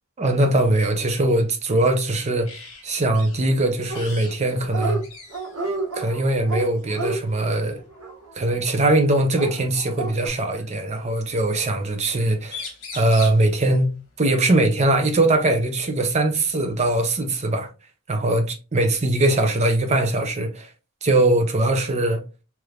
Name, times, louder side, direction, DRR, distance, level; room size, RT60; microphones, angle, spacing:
voice 1, 0.2-2.5 2.8-5.0 5.9-7.8 8.4-12.7 12.9-13.9 14.2-17.7 18.1-20.7 21.0-22.2, right 2 dB, 30° right, 0.5 m, -21 dB
sound 1, 2.4-2.8 3.1-3.4 3.9-4.4 4.6-4.7 5.0-5.6 6.8-7.0 8.7-8.8 9.9-10.8 12.1-12.2 12.4-13.5 15.4-15.5 15.9-16.9, left 4 dB, 65° left, 1.1 m, -39 dB
Dog, 3.9-4.4 4.6-5.0 5.3-8.7 9.3-10.3, right 3 dB, 90° right, 1.2 m, -31 dB
3.2 x 3.0 x 2.4 m
head